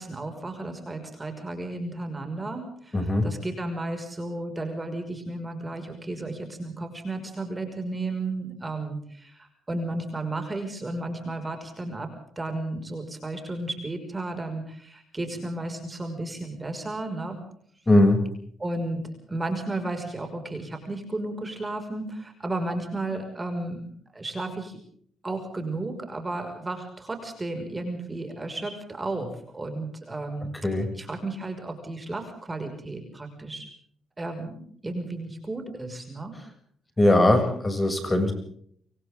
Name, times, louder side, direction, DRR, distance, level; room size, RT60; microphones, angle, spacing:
voice 1, 0.0-12.1 12.4-17.4 18.6-23.8 24.1-24.8 25.2-30.5 31.0-33.7 34.2-36.3, right 2 dB, 20° right, 6 dB, 5.9 m, -33 dB
voice 2, 2.9-3.3 17.9-18.3 30.6-30.9 37.0-38.3, left 1 dB, 15° left, 7 dB, 7.3 m, -20 dB
28.0 x 25.5 x 3.8 m, 0.62 s
cardioid pair, 90°, 0 cm